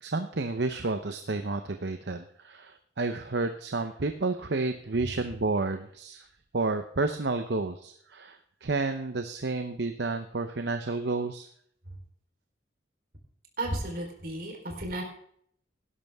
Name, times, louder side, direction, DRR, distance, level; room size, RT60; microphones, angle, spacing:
voice 1, 0.0-6.2 6.5-11.5, right 3 dB, 65° right, 8 dB, 0.8 m, -31 dB
voice 2, 13.6-15.0, right 1 dB, 50° right, 1 dB, 4.0 m, -33 dB
18.0 x 11.0 x 3.6 m, 0.64 s
head